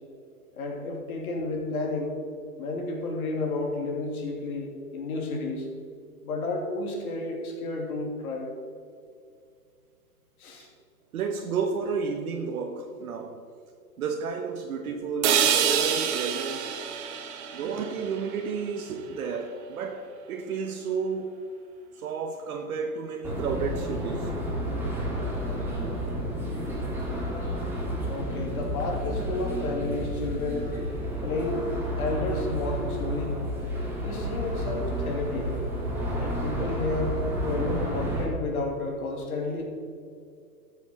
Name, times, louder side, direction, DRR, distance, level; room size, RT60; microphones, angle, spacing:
voice 1, 0.5-2.2 2.6-5.7 6.2-8.5 10.4-10.7 28.0-30.8 31.2-31.7 31.9-33.4 34.0-35.5 36.2-39.6, left 2 dB, 60° left, 3.1 m, -31 dB
voice 2, 11.1-13.4 14.0-16.7 17.5-21.4 21.9-24.3, right 5 dB, 60° right, 1.2 m, -32 dB
sound 1, 15.2-19.3, right 8 dB, 45° right, 1.5 m, -27 dB
sound 2, 23.2-38.2, equal, 5° right, 2.3 m, -31 dB
13.5 x 7.3 x 5.3 m
hypercardioid pair, 135°, 49 cm